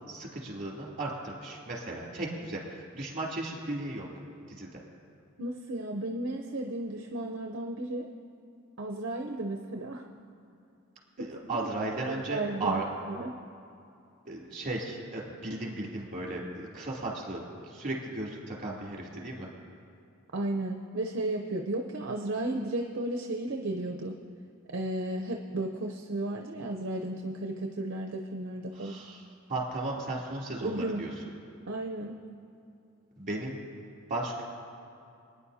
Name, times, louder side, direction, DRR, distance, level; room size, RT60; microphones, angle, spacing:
voice 1, 0.0-4.1 4.5-4.8 11.2-12.8 14.2-19.5 28.7-29.2 29.5-31.1 33.2-33.6 34.1-34.4, right 2 dB, 40° right, -3 dB, 2.8 m, -35 dB
voice 2, 5.4-8.1 8.8-10.1 11.3-11.7 12.0-12.8 13.1-13.3 20.3-24.2 24.7-29.0 30.6-31.0 31.7-32.1, right 1 dB, 60° right, 2 dB, 0.6 m, -34 dB
26.0 x 9.9 x 2.8 m, 2.6 s
head